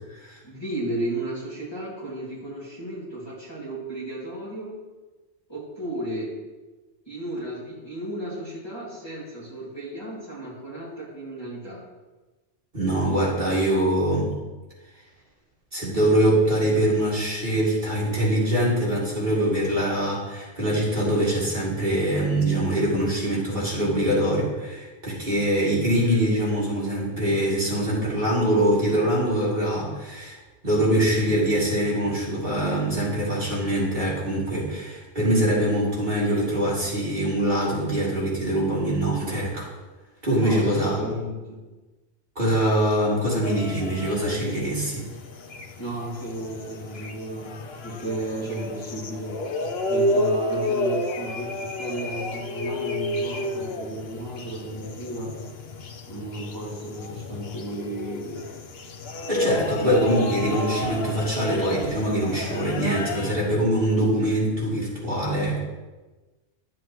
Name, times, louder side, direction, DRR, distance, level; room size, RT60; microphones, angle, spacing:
voice 1, 0.4-4.7 5.5-6.3 7.1-11.8 40.4-41.6 45.8-47.5 47.8-49.4 49.9-55.3 56.1-58.4, right 1 dB, 20° left, -7 dB, 2.3 m, -34 dB
voice 2, 12.7-14.3 15.7-30.4 30.6-39.7 40.2-41.0 42.3-45.1 59.3-65.6, right 1 dB, 40° right, -7 dB, 2.9 m, -23 dB
sound 1, 43.4-63.4, left 1 dB, 55° left, 1.0 m, -31 dB
12.0 x 7.4 x 3.1 m, 1.2 s
omnidirectional pair, 1.3 m